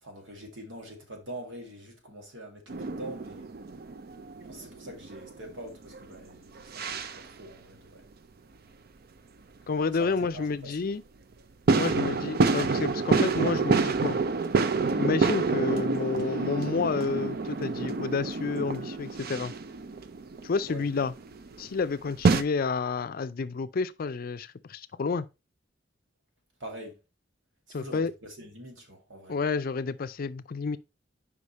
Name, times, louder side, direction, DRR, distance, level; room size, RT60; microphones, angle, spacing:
voice 1, 0.0-3.5 4.4-8.0 9.9-10.8 20.7-20.8 26.6-27.0 27.7-29.4, right 1 dB, 90° right, 2.1 m, -44 dB
sound 1, 2.7-6.2 6.6-7.3 10.2-10.3 11.7-22.4, right 4 dB, 55° right, 0.5 m, -28 dB
voice 2, 9.7-11.0 11.8-14.2 15.0-19.5 20.4-21.1 21.6-25.3 27.7-28.1 29.3-30.8, left 4 dB, 50° left, 0.4 m, -30 dB
5.0 x 4.9 x 4.0 m
head